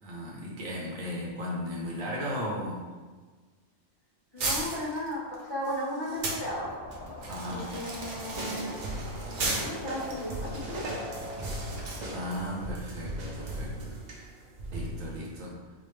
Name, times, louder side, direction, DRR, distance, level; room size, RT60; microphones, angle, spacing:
voice 1, 0.0-2.8 7.3-7.6 12.0-14.0 14.7-15.5, equal, 80° right, -4 dB, 1.3 m, -36 dB
voice 2, 4.3-6.7 7.5-8.8 9.2-10.8, equal, 25° left, -8 dB, 0.8 m, -35 dB
sound 1, 4.4-6.4 6.9-12.1, right 2 dB, 65° right, 1.0 m, -36 dB
sound 2, 6.4-12.7, left 1 dB, 60° left, 0.5 m, -44 dB
sound 3, 8.4-15.2, right 1 dB, 50° right, 0.6 m, -38 dB
5.0 x 2.1 x 3.2 m, 1.4 s
omnidirectional pair, 1.4 m